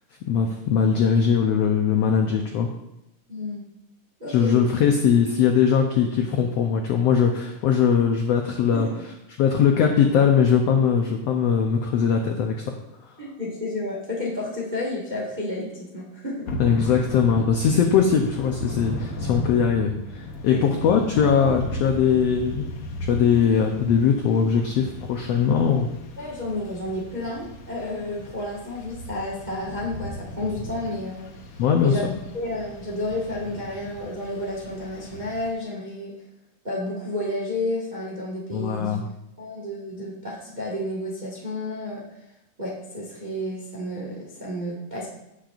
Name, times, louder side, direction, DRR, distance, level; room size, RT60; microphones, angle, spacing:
voice 1, 0.3-2.7 4.3-8.9 9.4-12.8 13.0-13.1 16.6-22.7 23.0-25.9 31.6-32.0 38.5-39.0, left 7 dB, 90° left, 3 dB, 1.4 m, -21 dB
voice 2, 3.3-3.6 4.2-4.7 8.7-9.0 13.2-16.5 20.5-20.8 26.2-31.3 31.8-32.1 32.3-36.1 36.6-39.0 39.4-42.0 42.6-45.1, left 1 dB, 35° right, -4 dB, 0.7 m, -31 dB
Thunder / Rain, 16.5-35.5, left 1 dB, 70° left, 1.4 m, -36 dB
16.0 x 6.6 x 2.5 m, 0.88 s
omnidirectional pair, 3.8 m